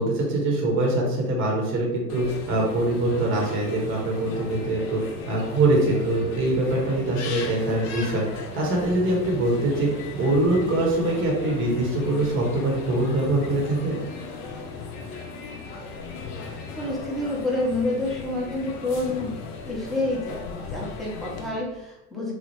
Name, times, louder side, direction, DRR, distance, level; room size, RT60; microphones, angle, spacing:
voice 1, 0.0-14.0, right 2 dB, 25° right, -1 dB, 0.8 m, -23 dB
sound 1, 2.1-21.5, left 4 dB, 35° left, 0.5 m, -37 dB
voice 2, 16.7-22.3, left 2 dB, ahead, -5 dB, 0.7 m, -28 dB
2.9 x 2.0 x 2.9 m, 0.93 s
hypercardioid pair, 80°, 49 cm